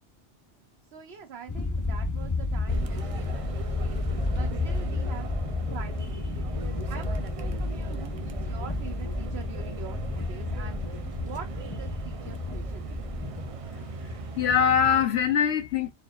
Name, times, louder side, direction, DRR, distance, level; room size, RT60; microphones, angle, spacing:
voice 1, 0.9-5.3 5.7-6.5 6.9-10.8 11.2-13.2, right 7 dB, 70° right, 0.9 m, -44 dB
sound 1, 1.5-13.5, left 3 dB, 20° left, 0.6 m, -31 dB
sound 2, 2.7-15.1, right 4 dB, 45° right, 0.4 m, -39 dB
voice 2, 14.0-15.9, left 8 dB, 75° left, 0.9 m, -23 dB
4.2 x 3.3 x 2.3 m
omnidirectional pair, 1.1 m